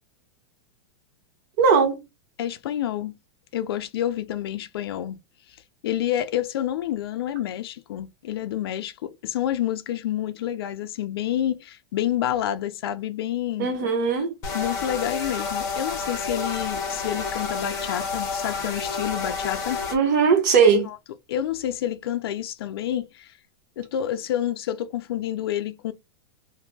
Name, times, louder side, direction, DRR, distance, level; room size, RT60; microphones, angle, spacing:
voice 1, 1.6-2.0 13.6-14.3 19.9-20.9, right 5 dB, 45° right, 1.1 m, -19 dB
voice 2, 2.4-3.1 3.5-5.2 5.8-13.7 14.5-19.8 20.8-21.0 21.3-23.3 23.8-25.9, left 11 dB, 65° left, 0.4 m, -28 dB
sound 1, 14.4-19.9, left 4 dB, 20° left, 0.9 m, -30 dB
2.6 x 2.3 x 3.7 m
supercardioid pair, 175°, 14 cm